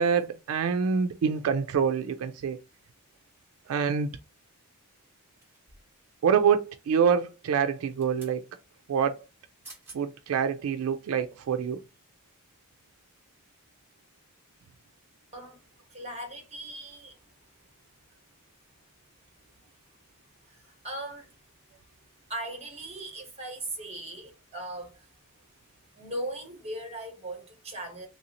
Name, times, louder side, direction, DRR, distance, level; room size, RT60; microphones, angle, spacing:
voice 1, 0.0-2.6 3.7-4.1 6.2-8.4 8.9-9.2 9.9-11.8, right 6 dB, 75° right, 0.3 m, -26 dB
sound 1, 5.4-6.0 7.7-8.4 9.4-9.5 9.6-10.0 10.6-10.7, right 2 dB, 10° right, 1.2 m, -50 dB
voice 2, 15.9-17.2 20.5-21.3 22.3-25.1 25.9-28.1, right 1 dB, 30° right, 1.1 m, -38 dB
3.1 x 2.7 x 2.8 m
head